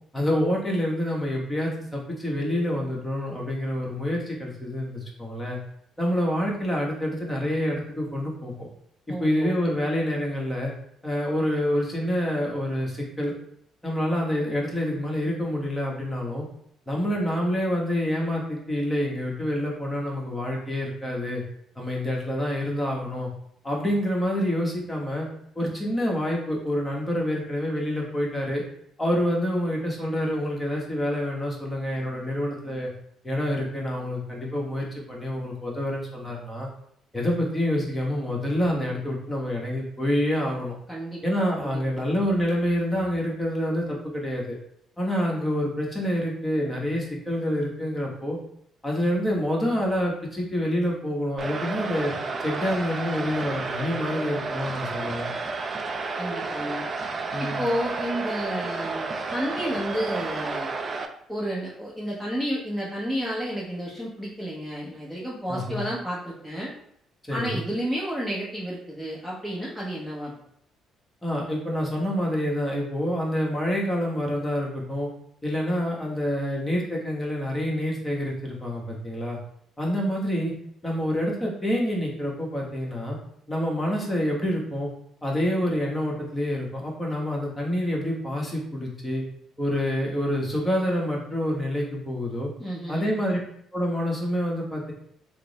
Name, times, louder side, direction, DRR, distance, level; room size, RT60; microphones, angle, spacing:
voice 1, 0.1-5.6 6.0-8.7 9.2-10.7 11.0-13.3 13.8-16.5 16.9-21.4 21.8-23.3 23.6-25.3 25.5-28.6 29.0-32.9 33.2-36.7 37.1-40.8 41.2-44.6 45.0-48.4 48.8-52.1 52.4-55.3 57.3-57.7 65.5-65.8 67.3-67.6 71.2-75.1 75.4-79.4 79.8-80.5 80.8-83.2 83.5-84.9 85.2-89.2 89.6-92.5 92.9-93.4 93.7-94.9, equal, 15° left, -2 dB, 1.1 m, -27 dB
voice 2, 9.1-9.5 40.9-41.2 41.6-41.8 56.2-56.8 57.4-60.7 61.3-66.7 67.3-70.3 92.6-93.0, equal, 5° right, -5 dB, 0.8 m, -31 dB
sound 1, 51.4-61.1, right 3 dB, 35° right, 0.4 m, -31 dB
3.3 x 2.0 x 4.0 m, 0.71 s
cardioid pair, 90°, 0 cm